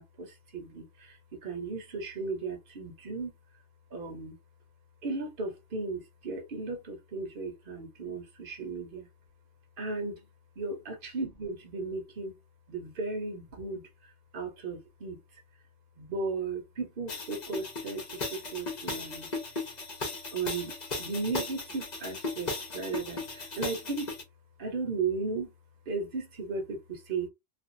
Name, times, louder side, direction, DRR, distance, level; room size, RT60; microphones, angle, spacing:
voice 1, 0.0-3.3 3.9-4.3 5.0-9.1 9.8-10.2 10.6-12.3 12.7-13.8 14.3-15.2 16.0-18.0 18.3-19.3 20.3-20.7 21.0-24.1 24.6-25.5 25.9-27.3, right 4 dB, 60° right, 1.0 m, -35 dB
sound 1, 17.1-24.2, left 3 dB, 45° left, 0.9 m, -37 dB
2.5 x 2.3 x 2.6 m
omnidirectional pair, 1.1 m